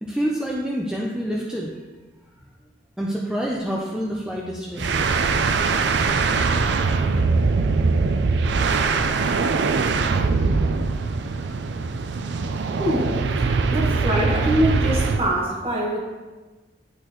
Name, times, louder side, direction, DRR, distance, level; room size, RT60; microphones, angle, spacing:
voice 1, 0.0-1.7 3.0-4.9, equal, 5° right, -4 dB, 0.6 m, -27 dB
sound 1, 4.8-15.3, right 4 dB, 65° right, 0.4 m, -22 dB
voice 2, 12.8-13.3 13.7-16.0, equal, 30° right, -2 dB, 1.4 m, -24 dB
11.0 x 4.0 x 3.1 m, 1.2 s
head